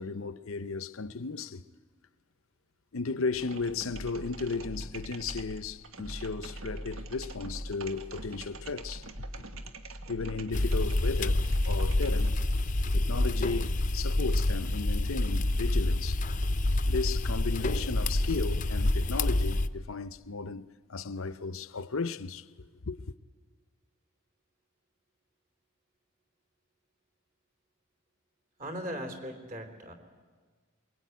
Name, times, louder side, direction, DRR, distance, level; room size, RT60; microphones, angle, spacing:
voice 1, 0.0-1.6 2.9-9.1 10.1-12.4 12.9-16.2 16.9-22.5 22.9-23.0, left 4 dB, 65° left, 0.7 m, -35 dB
sound 1, 3.3-12.6, right 1 dB, 65° right, 1.7 m, -43 dB
sound 2, 10.5-19.7, left 1 dB, 35° left, 0.7 m, -27 dB
voice 2, 28.6-29.9, equal, 40° right, 3.4 m, -38 dB
23.5 x 22.5 x 9.3 m
head